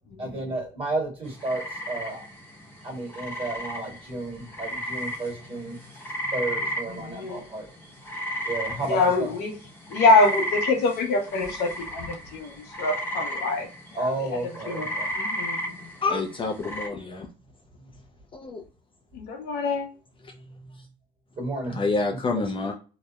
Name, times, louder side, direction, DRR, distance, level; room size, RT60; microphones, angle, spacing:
voice 1, 0.2-2.2 2.8-5.8 6.3-7.7 8.4-9.3 14.0-15.1 20.3-20.4 21.4-21.8 22.2-22.4, right 2 dB, 30° right, -2 dB, 1.5 m, -32 dB
sound 1, 1.3-16.9, equal, 15° left, 0.8 m, -34 dB
voice 2, 7.1-7.4 8.9-9.5 9.9-12.5 12.8-13.7 13.9-14.1 14.7-14.9 15.2-15.8 19.1-19.9, left 3 dB, 75° left, 4 dB, 0.6 m, -24 dB
voice 3, 16.0-17.3 18.3-18.6 21.8-22.7, left 3 dB, 30° left, 2 dB, 0.4 m, -27 dB
2.7 x 2.0 x 2.2 m, 0.36 s
cardioid pair, 110°, 17 cm